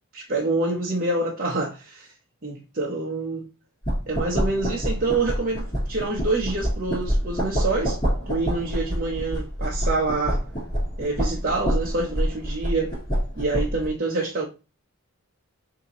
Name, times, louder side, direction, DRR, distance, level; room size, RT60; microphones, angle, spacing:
voice 1, 0.1-2.1 2.4-3.5 4.1-8.0 8.3-10.4 11.0-12.9 13.4-14.5, right 3 dB, 40° right, 0.8 m, -26 dB
sound 1, 3.8-13.9, equal, 20° left, 2.0 m, -27 dB
6.4 x 2.8 x 2.9 m
head